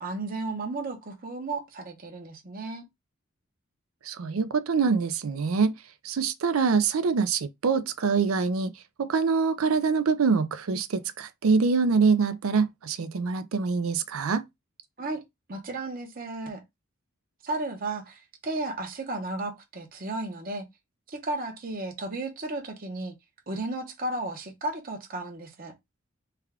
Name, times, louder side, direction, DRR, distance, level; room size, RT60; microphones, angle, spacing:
voice 1, 0.0-2.9 15.0-15.2 15.5-16.6 17.4-20.6 21.1-23.2 23.5-25.7, right 2 dB, 40° right, 0.9 m, -34 dB
voice 2, 4.0-5.7 6.0-8.7 9.0-14.4, right 5 dB, 85° right, 0.5 m, -25 dB
3.5 x 2.3 x 3.4 m
head